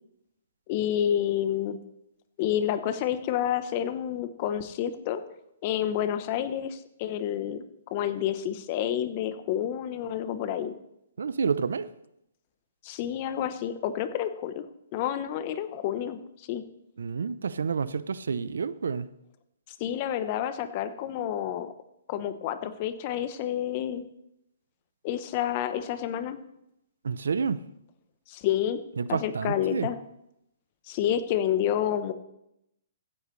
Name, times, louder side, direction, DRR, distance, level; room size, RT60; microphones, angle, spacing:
voice 1, 0.7-1.8 2.4-5.2 5.6-10.7 12.8-14.6 14.9-16.6 19.8-21.7 22.1-24.1 25.0-26.4 28.3-28.8 29.1-30.0 30.9-32.1, left 10 dB, 35° left, 11 dB, 0.9 m, -29 dB
voice 2, 11.2-11.9 17.0-19.1 27.0-27.6 29.0-29.9, right 5 dB, 85° right, 16 dB, 0.6 m, -29 dB
15.5 x 10.0 x 3.2 m, 0.82 s
hypercardioid pair, 150°, 0 cm